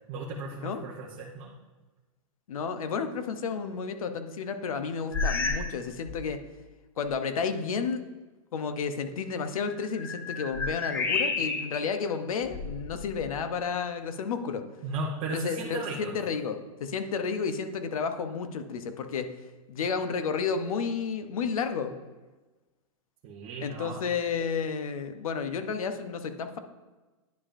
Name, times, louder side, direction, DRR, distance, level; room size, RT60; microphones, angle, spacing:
voice 1, 0.1-1.5 14.8-16.1 23.2-24.0, right 3 dB, 30° right, -5 dB, 0.8 m, -36 dB
voice 2, 2.5-6.4 7.0-8.0 8.5-14.6 15.3-19.3 19.7-21.9 23.6-26.6, left 5 dB, 90° left, 9 dB, 0.7 m, -31 dB
sound 1, 5.1-5.8 6.1-6.4 7.1-7.2 9.6-11.9 12.4-13.5, left 4 dB, 10° left, 0.3 m, -31 dB
10.5 x 4.9 x 2.6 m, 1.2 s
hypercardioid pair, 155°, 17 cm